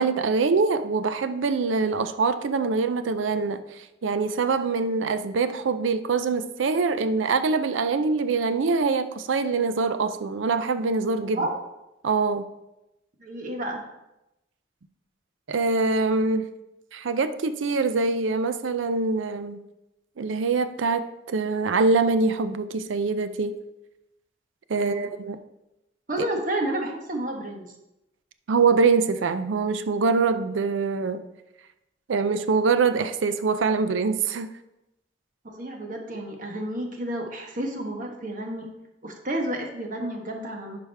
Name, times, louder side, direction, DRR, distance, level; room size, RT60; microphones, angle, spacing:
voice 1, 0.0-11.4 12.0-12.4 15.5-16.5 16.9-19.6 20.2-23.6 24.7-25.4 26.2-26.3 28.5-31.2 32.1-34.5, right 4 dB, 90° right, 11 dB, 0.5 m, -24 dB
voice 2, 13.2-13.8 24.8-25.1 26.1-27.6 35.4-38.7 39.0-40.8, right 1 dB, 45° right, 2 dB, 1.2 m, -31 dB
11.0 x 5.0 x 3.4 m, 0.92 s
head